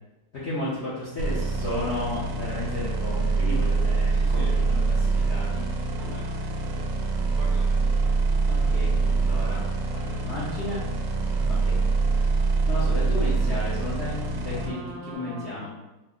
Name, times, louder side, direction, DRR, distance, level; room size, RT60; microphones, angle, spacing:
voice 1, 0.3-5.7 8.5-9.7 10.0-10.8 11.5-11.8 12.7-14.8 15.1-15.7, left 1 dB, 70° left, -8 dB, 0.6 m, -33 dB
sound 1, 1.2-14.7, right 3 dB, 90° right, 1.3 m, -25 dB
voice 2, 4.1-4.6 6.0-6.9 7.3-7.8 14.5-15.7, right 2 dB, 70° right, -4 dB, 0.9 m, -42 dB
3.3 x 2.1 x 3.6 m, 1.0 s
omnidirectional pair, 2.0 m